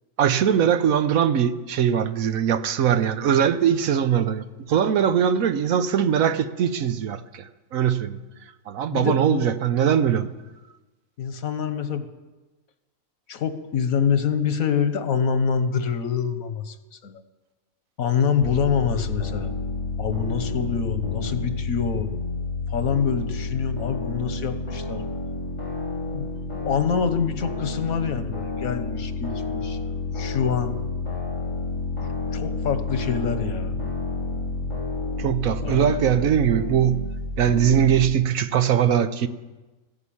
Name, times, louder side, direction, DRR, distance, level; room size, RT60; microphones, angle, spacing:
voice 1, 0.2-8.2 8.7-10.3 35.2-37.0 37.4-39.3, right 8 dB, 80° right, 1.2 m, -21 dB
voice 2, 8.9-9.5 11.2-12.0 13.3-16.8 17.0-17.2 18.0-19.5 20.0-22.1 22.7-25.0 26.1-26.3 26.6-29.8 30.1-30.8 32.3-33.8 35.2-35.3 35.6-36.0, left 7 dB, 90° left, 1.5 m, -25 dB
sound 1, 18.4-38.1, left 3 dB, 20° left, 3.7 m, -30 dB
14.5 x 11.0 x 8.6 m
omnidirectional pair, 1.4 m